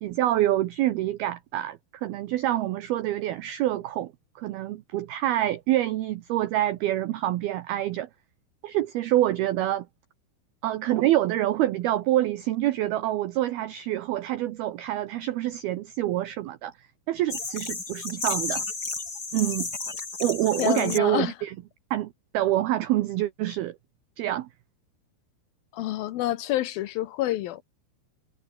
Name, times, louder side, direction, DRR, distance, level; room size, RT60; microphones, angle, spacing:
voice 1, 0.0-8.1 8.6-9.9 10.6-16.7 17.1-18.6 19.3-19.7 20.2-21.6 21.9-23.8 24.2-24.5, right 14 dB, 80° right, 2.2 m, -26 dB
sound 1, 17.3-21.0, left 4 dB, 20° left, 3.3 m, -32 dB
voice 2, 20.6-21.3 25.7-27.6, left 14 dB, 90° left, 2.1 m, -28 dB
omnidirectional pair, 5.8 m